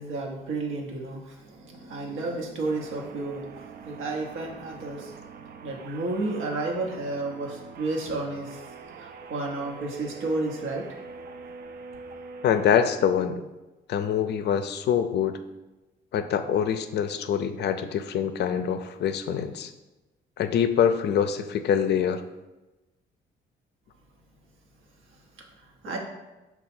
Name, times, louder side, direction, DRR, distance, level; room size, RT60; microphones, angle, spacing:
voice 1, 0.0-5.1 5.6-8.6 9.0-10.9 25.4-26.0, right 2 dB, 85° right, 0 dB, 0.9 m, -32 dB
sound 1, 2.6-13.0, right 4 dB, 50° right, 0.4 m, -44 dB
voice 2, 12.4-13.4 13.9-15.4 16.1-19.7 20.4-22.2, left 8 dB, 60° left, 9 dB, 0.4 m, -25 dB
5.5 x 2.3 x 4.2 m, 1.1 s
cardioid pair, 90°, 20 cm